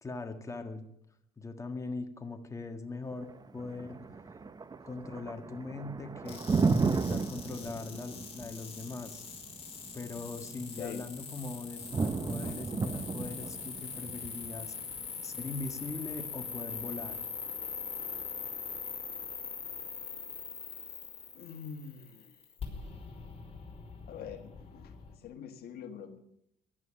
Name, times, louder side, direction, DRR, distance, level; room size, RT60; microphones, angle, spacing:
voice 1, 0.0-0.9 1.4-4.0 4.8-6.4 6.7-9.2 9.9-14.7 15.2-17.2, left 3 dB, 20° left, 5 dB, 1.8 m, -41 dB
Thunder, 3.1-17.1, right 4 dB, 25° right, 0.8 m, -35 dB
sound 1, 6.3-25.1, left 6 dB, 35° left, 5.0 m, -42 dB
voice 2, 21.4-22.0 24.1-24.9 25.2-26.2, left 7 dB, 65° left, 8 dB, 1.6 m, -44 dB
17.0 x 11.0 x 6.4 m, 0.77 s
cardioid pair, 110°, 17 cm